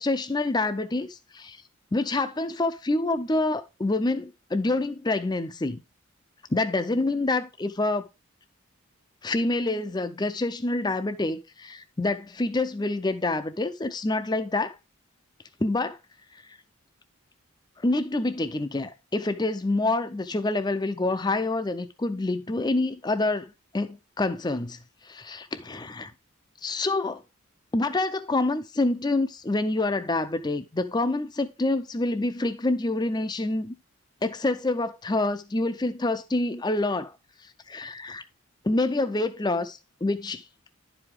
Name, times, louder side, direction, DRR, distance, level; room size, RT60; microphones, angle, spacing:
voice 1, 0.0-1.6 1.9-5.8 6.5-8.1 9.2-14.8 15.6-16.0 17.8-24.8 25.0-26.1 26.6-27.2 27.7-33.7 34.2-37.2 37.7-38.2 38.6-40.4, left 2 dB, 20° left, 0.5 m, -27 dB
11.0 x 4.8 x 3.5 m
head